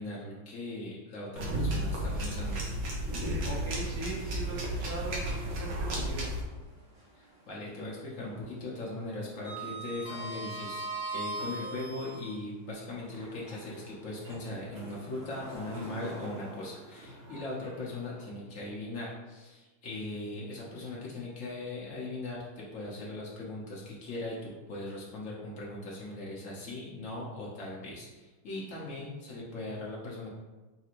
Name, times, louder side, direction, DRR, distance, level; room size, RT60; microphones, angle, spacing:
voice 1, 0.0-2.6 7.1-30.3, left 2 dB, 85° left, -5 dB, 0.6 m, -39 dB
sound 1, 1.4-6.4, right 1 dB, 70° right, 1.5 m, -33 dB
Sliding door, 3.1-4.1 4.5-4.6 6.3-7.3 7.6-8.0 8.2-12.3 13.0-18.2, right 2 dB, 40° right, 0.5 m, -42 dB
voice 2, 3.4-6.3, right 2 dB, 90° right, -4 dB, 1.8 m, -40 dB
5.7 x 2.4 x 2.9 m, 1.2 s
omnidirectional pair, 2.3 m